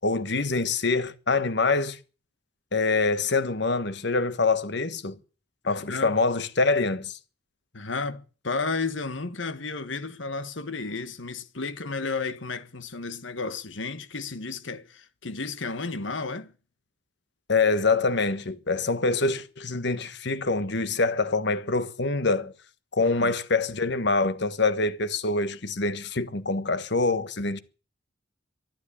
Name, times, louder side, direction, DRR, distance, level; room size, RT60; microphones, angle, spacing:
voice 1, 0.0-2.0 2.7-5.1 5.7-7.2 17.5-22.5 23.0-27.6, left 3 dB, 65° left, 1.4 m, -25 dB
voice 2, 5.6-6.1 7.7-16.5 23.0-23.4, left 4 dB, 80° left, 1.6 m, -33 dB
13.0 x 12.0 x 8.6 m
head